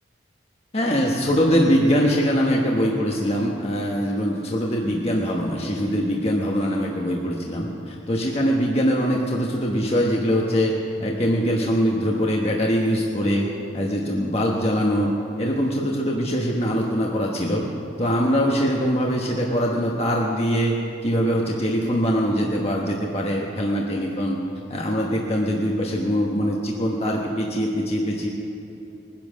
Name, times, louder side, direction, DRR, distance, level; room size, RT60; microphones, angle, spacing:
voice 1, 0.7-10.7 11.0-13.5 13.7-15.1 15.4-17.6 18.0-20.7 21.0-24.4 24.7-28.3, equal, 35° left, -1 dB, 1.2 m, -22 dB
20.0 x 10.5 x 6.3 m, 2.8 s
head